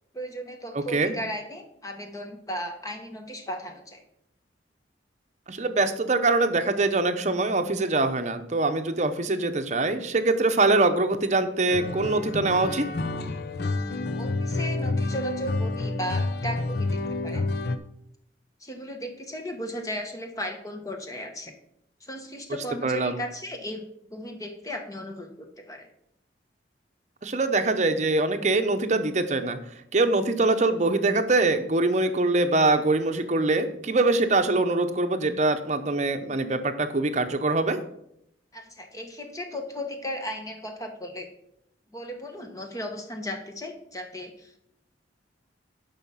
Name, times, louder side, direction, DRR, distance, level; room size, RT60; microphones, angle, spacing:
voice 1, 0.1-4.0 14.2-17.5 18.6-21.5 22.0-23.8 24.1-25.9 38.5-41.3 41.9-44.6, equal, 20° left, 4 dB, 1.2 m, -36 dB
voice 2, 0.7-1.1 5.5-12.9 22.8-23.2 27.2-29.6 29.9-37.8, right 2 dB, 40° right, 8 dB, 0.8 m, -23 dB
sound 1, 11.7-17.8, left 2 dB, 60° left, 0.6 m, -29 dB
11.0 x 5.6 x 5.7 m, 0.76 s
head